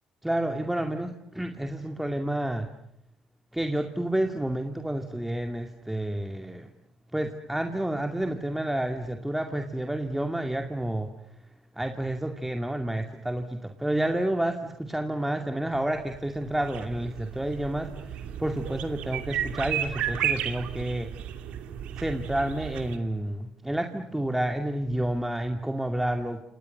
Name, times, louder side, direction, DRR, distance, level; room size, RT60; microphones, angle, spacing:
voice 1, 0.2-2.7 3.5-6.7 7.1-11.1 11.8-21.2 22.0-26.4, right 1 dB, 5° right, 5 dB, 2.4 m, -30 dB
sound 1, 15.8-23.0, right 10 dB, 70° right, 2.7 m, -33 dB
29.0 x 28.0 x 6.8 m, 0.78 s
hypercardioid pair, 65°, 2 cm